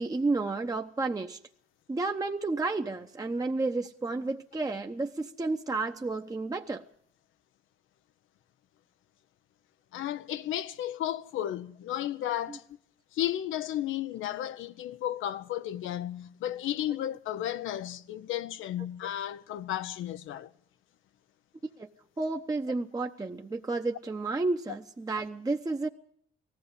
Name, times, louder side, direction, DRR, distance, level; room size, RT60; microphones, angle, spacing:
voice 1, 0.0-1.4 1.9-6.8 12.5-12.6 21.8-21.9 22.2-25.9, right 3 dB, 20° right, 0.9 m, -31 dB
voice 2, 9.9-12.6 13.1-20.5, left 12 dB, 85° left, 0.9 m, -33 dB
19.0 x 14.5 x 9.7 m
cardioid pair, 90°, 20 cm